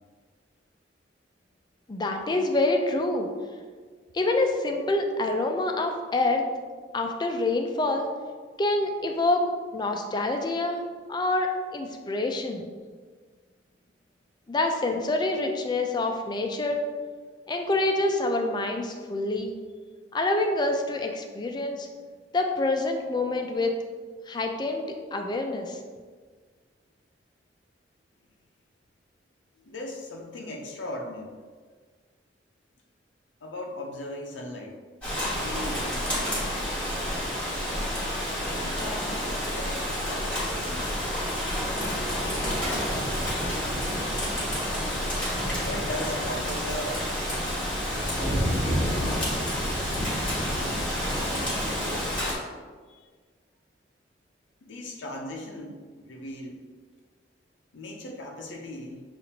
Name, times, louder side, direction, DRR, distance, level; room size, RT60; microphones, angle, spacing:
voice 1, 1.9-3.3 4.1-6.5 6.9-8.1 8.6-9.5 9.7-12.6 14.5-16.9 17.5-19.5 20.1-21.9 22.3-23.7 24.3-25.8, left 2 dB, 25° left, 4 dB, 0.4 m, -26 dB
voice 2, 29.7-31.3 33.4-34.8 35.4-36.7 37.6-38.0 38.4-41.1 41.8-42.1 42.4-44.2 45.6-47.0 48.2-49.5 51.3-52.3 52.9-53.1 54.6-56.6 57.7-59.0, left 1 dB, 90° left, 0 dB, 0.5 m, -39 dB
Rain, 35.0-52.3, equal, 10° left, 1.2 m, -29 dB
6.6 x 2.5 x 2.8 m, 1.5 s
head